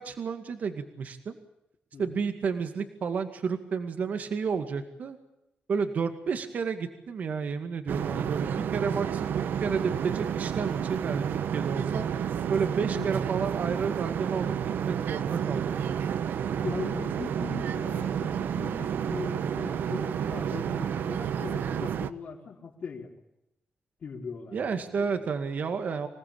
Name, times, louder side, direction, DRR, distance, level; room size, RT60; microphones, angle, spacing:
voice 1, 0.0-1.4 2.0-5.2 5.7-12.1 12.5-14.5 14.9-16.0 24.5-26.1, right 5 dB, 50° right, 8 dB, 2.1 m, -31 dB
voice 2, 1.9-2.2 12.7-13.1 16.6-23.1 24.0-25.1, left 5 dB, 50° left, -3 dB, 3.9 m, -40 dB
sound 1, 7.9-22.1, right 8 dB, 70° right, 1.2 m, -30 dB
26.5 x 18.5 x 8.7 m, 0.87 s
wide cardioid pair, 180°, 3 cm